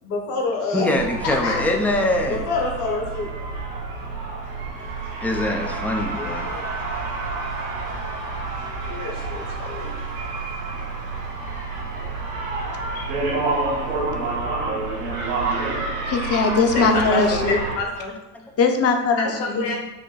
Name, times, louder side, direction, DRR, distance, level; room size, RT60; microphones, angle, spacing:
voice 1, 0.0-1.6 2.3-3.6 6.4-6.7 8.8-10.0 15.5-15.6 16.7-18.1 19.2-19.8, left 3 dB, 55° left, -1 dB, 1.3 m, -27 dB
voice 2, 0.7-2.4 5.2-6.5, left 1 dB, 5° left, 2 dB, 0.3 m, -23 dB
sound 1, 0.9-17.8, right 3 dB, 80° right, 1.3 m, -29 dB
voice 3, 16.1-17.6 18.6-19.8, left 4 dB, 30° left, 4 dB, 0.7 m, -20 dB
5.1 x 2.2 x 3.9 m, 1.1 s
hypercardioid pair, 75°, 48 cm